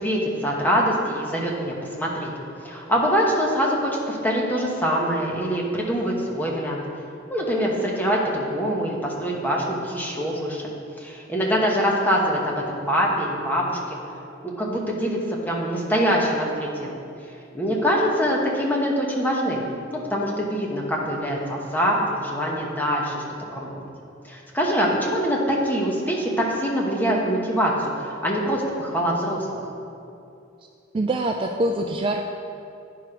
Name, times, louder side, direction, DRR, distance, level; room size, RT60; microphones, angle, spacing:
voice 1, 0.0-2.3 2.6-6.8 7.3-10.6 11.0-14.0 14.4-16.9 17.5-19.6 19.9-23.2 23.5-23.9 24.2-29.7, equal, 10° left, -3 dB, 1.1 m, -24 dB
voice 2, 30.9-32.2, right 1 dB, 25° right, 3 dB, 0.3 m, -24 dB
10.0 x 4.9 x 4.9 m, 2.6 s
head